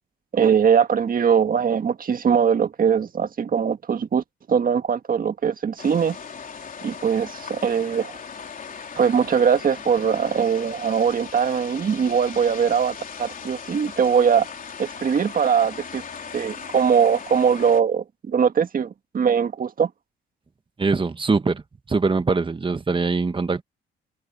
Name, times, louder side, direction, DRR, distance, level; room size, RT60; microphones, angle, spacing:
voice 1, 0.3-6.2 6.8-8.2 9.0-14.5 14.8-16.0 16.3-19.9, right 7 dB, 45° right, 1.8 m, -21 dB
sound 1, 5.8-17.8, left 6 dB, 45° left, 3.8 m, -38 dB
voice 2, 20.8-21.6 21.9-23.6, right 4 dB, 25° right, 1.5 m, -22 dB
cardioid pair, 90°, 20 cm